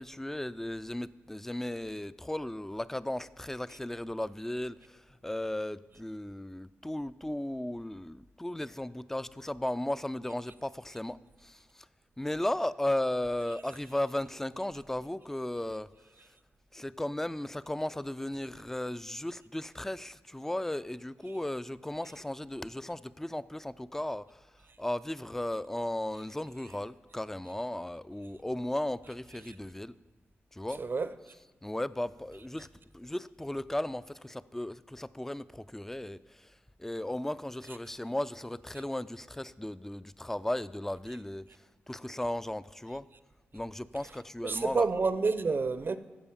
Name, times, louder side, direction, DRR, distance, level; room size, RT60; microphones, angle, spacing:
voice 1, 0.0-11.9 12.2-15.9 16.7-24.5 24.8-29.9 30.5-30.8 31.6-32.7 32.9-43.1 43.5-44.9, left 1 dB, 10° left, 0.3 m, -36 dB
voice 2, 44.4-46.0, right 4 dB, 50° right, 0.6 m, -28 dB
14.0 x 4.8 x 7.1 m
cardioid pair, 60°, 5 cm